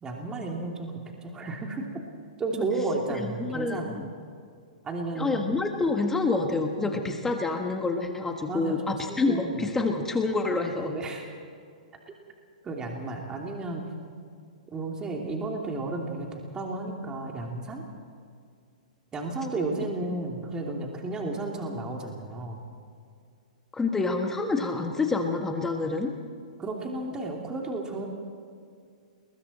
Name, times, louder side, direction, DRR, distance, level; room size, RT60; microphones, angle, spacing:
voice 1, 0.0-1.9 2.4-4.0 4.8-5.5 6.8-7.2 8.5-9.5 10.6-11.3 12.1-12.2 12.6-13.8 14.7-17.8 19.1-22.6 26.6-28.1, right 2 dB, 15° right, 0 dB, 2.9 m, -33 dB
voice 2, 3.1-4.1 5.2-10.9 23.7-26.1, left 3 dB, 10° left, 3 dB, 1.5 m, -27 dB
29.5 x 21.5 x 4.3 m, 2.2 s
hypercardioid pair, 135°, 4 cm